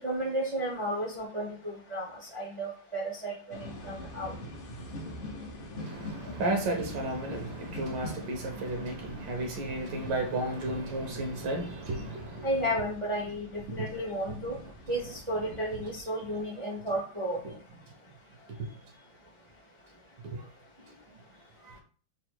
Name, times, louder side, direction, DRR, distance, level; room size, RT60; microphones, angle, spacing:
voice 1, 0.0-4.3 12.4-14.6 14.9-17.6, right 1 dB, 40° right, 0.4 m, -33 dB
sound 1, 3.5-16.0, left 1 dB, 55° left, 0.6 m, -44 dB
voice 2, 5.8-12.5 13.8-13.9 18.5-18.6 20.2-20.5 20.9-21.0 21.6-21.8, right 2 dB, 80° right, 1.5 m, -33 dB
4.0 x 2.1 x 4.5 m
omnidirectional pair, 2.0 m